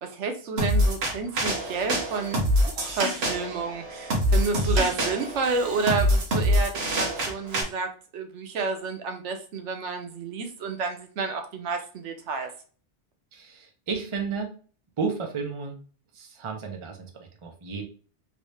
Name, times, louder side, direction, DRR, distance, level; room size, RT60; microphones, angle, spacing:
voice 1, 0.0-12.5, right 4 dB, 90° right, 5 dB, 1.0 m, -30 dB
sound 1, 0.6-7.6, equal, 65° right, 1.2 m, -25 dB
voice 2, 13.3-14.5 15.0-15.8 16.1-17.8, right 5 dB, 35° right, 3 dB, 0.6 m, -32 dB
3.2 x 2.7 x 3.1 m, 0.40 s
omnidirectional pair, 1.2 m